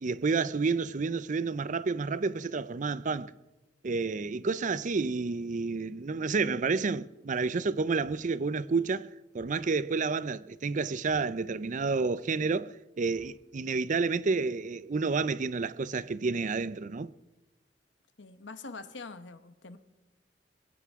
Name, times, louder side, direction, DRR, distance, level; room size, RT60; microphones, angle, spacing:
voice 1, 0.0-3.3 3.8-9.1 9.3-17.1, right 4 dB, 45° right, 0.5 m, -30 dB
sound 1, 8.0-8.2 9.3-9.5 11.0-11.2 13.0-13.3, equal, 10° right, 7.6 m, -59 dB
voice 2, 18.2-19.8, left 3 dB, 75° left, 1.1 m, -44 dB
22.5 x 16.0 x 3.6 m
head